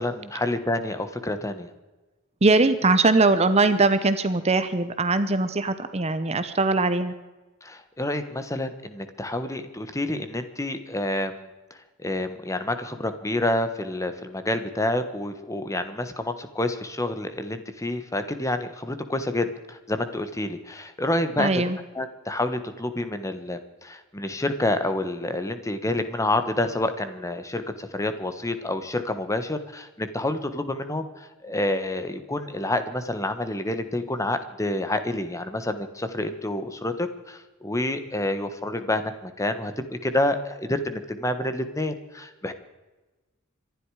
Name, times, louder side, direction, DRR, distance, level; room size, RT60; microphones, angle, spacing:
voice 1, 0.0-1.7 7.6-11.5 12.0-21.6 21.9-42.5, left 1 dB, 15° left, 9 dB, 1.2 m, -28 dB
voice 2, 2.4-7.1 21.4-21.8, right 3 dB, 30° right, 11 dB, 0.8 m, -21 dB
25.5 x 12.0 x 4.9 m, 1.1 s
head